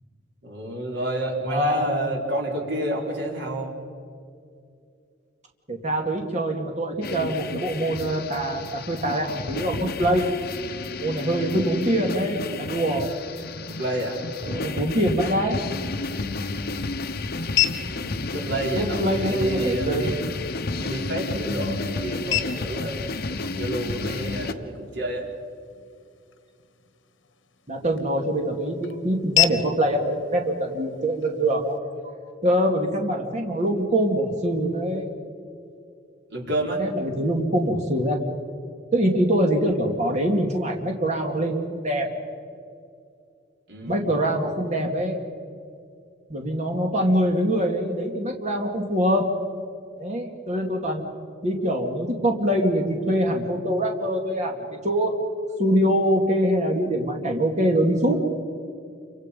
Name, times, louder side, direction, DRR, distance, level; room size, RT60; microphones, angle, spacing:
voice 1, 0.4-3.7 13.7-14.8 17.8-20.2 20.7-23.0 23.4-25.3 36.3-36.8 43.7-44.1, right 1 dB, 65° right, -1 dB, 4.4 m, -29 dB
voice 2, 1.5-1.9 5.7-10.3 10.9-13.1 14.4-15.6 18.8-20.1 27.7-31.8 32.4-35.1 36.8-38.2 38.9-42.1 43.9-45.2 46.3-49.3 50.0-51.0 51.4-55.1 55.6-58.2, right 1 dB, 40° right, 2 dB, 2.4 m, -24 dB
sound 1, 7.0-24.5, left 3 dB, 55° left, 1.0 m, -31 dB
sound 2, 15.8-31.8, left 12 dB, 80° left, 1.2 m, -33 dB
28.5 x 24.5 x 5.4 m, 2.4 s
head